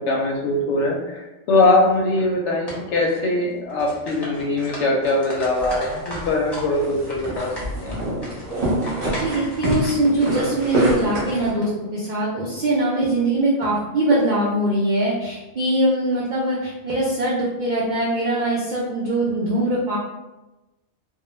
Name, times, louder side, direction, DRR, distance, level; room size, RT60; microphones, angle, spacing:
voice 1, 0.1-7.5 7.8-8.1, left 2 dB, 70° left, -1 dB, 0.8 m, -21 dB
sound 1, 1.9-2.2 2.7-3.4 3.7-6.7 7.0-10.4, left 1 dB, 25° left, 0.7 m, -36 dB
sound 2, 5.5-11.5, right 1 dB, 40° right, 0.7 m, -26 dB
voice 2, 9.1-20.0, right 1 dB, 70° right, -5 dB, 0.4 m, -22 dB
2.3 x 2.1 x 3.0 m, 1.0 s
omnidirectional pair, 1.3 m